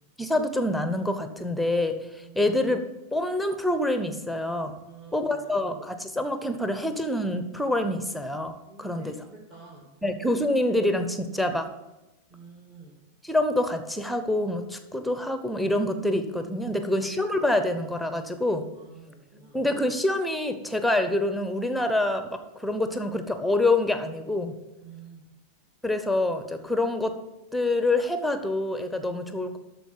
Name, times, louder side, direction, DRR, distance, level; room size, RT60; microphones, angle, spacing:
voice 1, 0.2-2.8 3.1-4.8 5.1-9.1 10.0-11.7 13.2-18.6 19.5-24.5 25.8-27.1 27.5-29.6, left 1 dB, ahead, 8 dB, 0.9 m, -26 dB
voice 2, 2.1-2.5 4.8-5.7 8.7-10.0 12.3-13.0 16.6-17.1 18.7-19.6 24.8-25.3, right 4 dB, 25° right, -3 dB, 1.9 m, -49 dB
12.5 x 4.5 x 5.9 m, 1.0 s
figure-of-eight pair, 90°, 0 cm